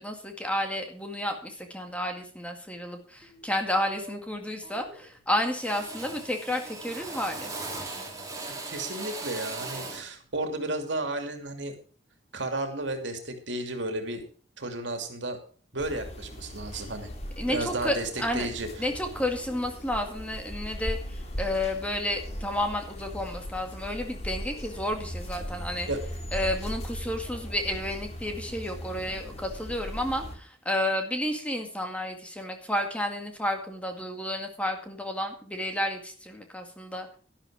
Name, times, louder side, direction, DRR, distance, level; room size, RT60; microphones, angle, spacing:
voice 1, 0.0-7.5 17.4-18.5 18.8-25.9 26.3-37.2, left 1 dB, 5° left, 4 dB, 2.0 m, -31 dB
Drill, 3.2-3.4 3.9-4.4 4.6-5.2 5.5-10.1, right 3 dB, 20° right, 3.2 m, -39 dB
voice 2, 8.6-11.7 12.3-14.2 14.6-15.4 15.7-17.1 17.5-18.1 18.3-18.7 25.9-26.0, right 2 dB, 70° right, 5 dB, 2.7 m, -33 dB
sound 1, 15.8-30.4, equal, 35° left, 2.5 m, -38 dB
12.0 x 11.5 x 4.9 m, 0.41 s
head